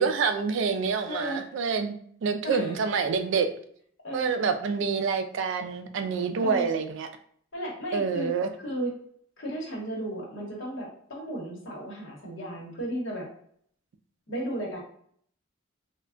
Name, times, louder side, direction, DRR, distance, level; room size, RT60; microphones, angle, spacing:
voice 1, 0.0-2.0 2.2-3.5 4.1-7.1 7.9-8.5, right 5 dB, 60° right, 8 dB, 0.3 m, -27 dB
voice 2, 1.1-1.4 2.4-2.8 3.1-3.2 4.0-4.3 6.4-6.7 7.5-8.3 8.6-8.9 9.4-13.3 14.3-14.8, right 1 dB, 65° left, -2 dB, 1.0 m, -34 dB
3.2 x 2.2 x 2.4 m, 0.63 s
head